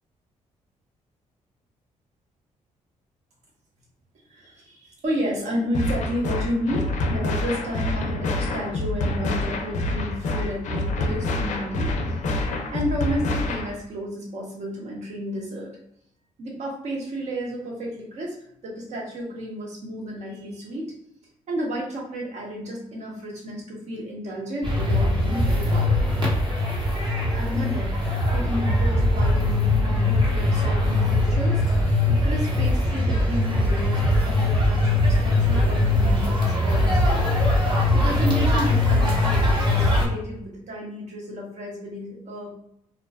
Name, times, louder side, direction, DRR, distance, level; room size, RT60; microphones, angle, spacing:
voice 1, 4.3-15.7 16.4-18.4 18.6-20.9 21.5-26.2 27.3-31.8 32.1-37.3 37.6-42.5, equal, 65° right, -2 dB, 0.9 m, -32 dB
sound 1, 5.7-13.7, left 2 dB, 70° left, 0.4 m, -27 dB
sound 2, 24.6-40.1, left 2 dB, 40° right, 0.8 m, -21 dB
2.5 x 2.2 x 2.2 m, 0.74 s
cardioid pair, 95°, 13 cm